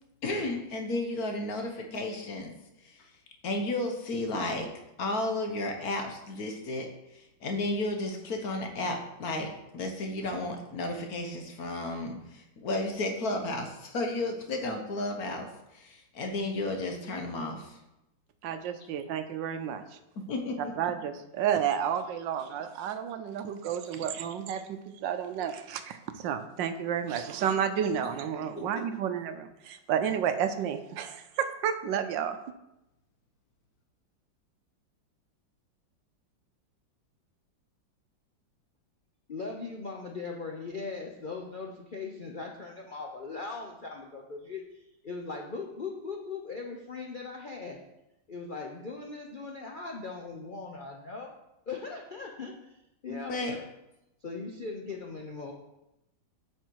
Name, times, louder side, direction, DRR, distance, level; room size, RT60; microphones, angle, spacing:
voice 1, 0.2-2.5 2.8-3.1 3.4-4.7 5.0-17.8 20.2-20.7 28.6-28.7 53.1-53.6, left 2 dB, 55° left, 4 dB, 1.4 m, -33 dB
voice 2, 18.4-20.0 20.8-32.4, right 8 dB, 75° right, 9 dB, 1.3 m, -31 dB
voice 3, 39.3-47.8 48.3-51.3 51.7-52.8 53.0-53.6 54.2-55.5, left 4 dB, 70° left, 0 dB, 0.4 m, -39 dB
9.0 x 5.7 x 4.6 m, 0.91 s
omnidirectional pair, 2.1 m